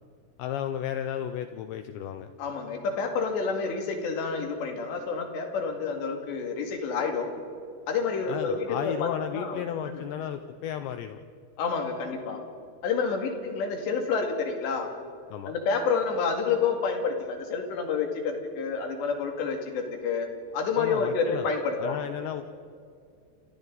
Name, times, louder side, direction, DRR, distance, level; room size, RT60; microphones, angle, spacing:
voice 1, 0.4-2.3 8.3-11.2 15.3-15.5 20.8-21.5 21.8-22.4, left 10 dB, 85° left, 8 dB, 2.5 m, -33 dB
voice 2, 2.4-7.3 7.9-10.0 11.6-12.4 12.8-14.9 15.5-22.0, left 5 dB, 60° left, 3 dB, 4.2 m, -29 dB
29.0 x 27.5 x 4.0 m, 2.3 s
omnidirectional pair, 6.0 m